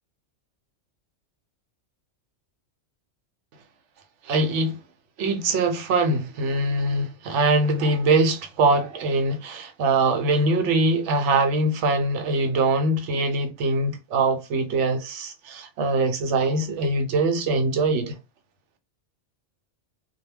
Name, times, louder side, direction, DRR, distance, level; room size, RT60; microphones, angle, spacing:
voice 1, 4.2-4.8 5.2-18.1, right 2 dB, 75° right, 0.9 m, -23 dB
2.3 x 2.2 x 3.2 m
omnidirectional pair, 1.2 m